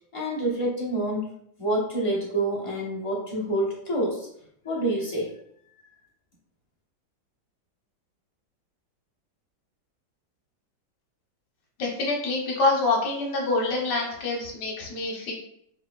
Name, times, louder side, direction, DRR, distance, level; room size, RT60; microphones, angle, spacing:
voice 1, 0.1-1.3 1.6-4.3 4.6-5.3, right 1 dB, 25° left, -6 dB, 0.7 m, -27 dB
voice 2, 11.8-15.3, left 3 dB, 70° left, -1 dB, 1.4 m, -26 dB
4.1 x 3.9 x 2.3 m, 0.71 s
omnidirectional pair, 2.1 m